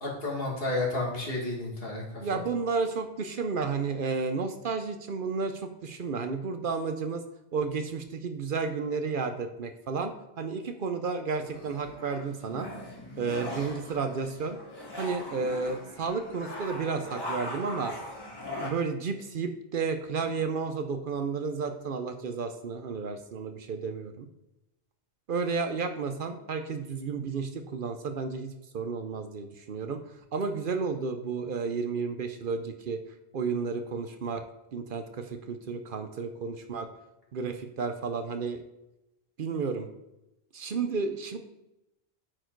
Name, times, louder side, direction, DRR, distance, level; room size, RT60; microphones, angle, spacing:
voice 1, 0.0-2.0 2.3-2.4, left 2 dB, 65° left, -2 dB, 2.2 m, -31 dB
voice 2, 2.2-7.2 7.5-12.7 13.2-14.6 15.0-17.9 18.6-24.3 25.3-33.0 33.3-34.4 34.7-36.9 37.3-38.6 39.4-39.9 40.5-41.4, right 5 dB, 60° right, 7 dB, 0.8 m, -32 dB
sound 1, 11.4-18.7, left 1 dB, 25° left, 1.4 m, -40 dB
8.7 x 4.7 x 4.5 m, 0.92 s
omnidirectional pair, 1.0 m